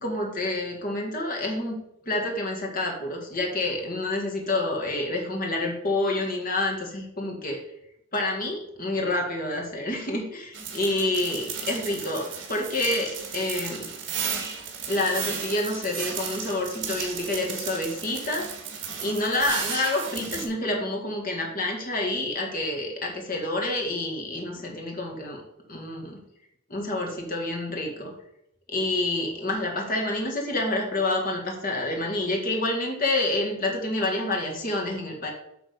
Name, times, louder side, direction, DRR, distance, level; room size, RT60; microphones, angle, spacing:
voice 1, 0.0-1.8 2.1-7.6 8.1-13.9 14.9-18.4 19.0-25.4 25.7-26.2 26.7-28.1 28.7-35.3, left 2 dB, 45° left, 0 dB, 1.8 m, -28 dB
sound 1, 10.5-20.5, right 6 dB, 65° right, 1.8 m, -34 dB
8.1 x 3.9 x 6.7 m, 0.78 s
head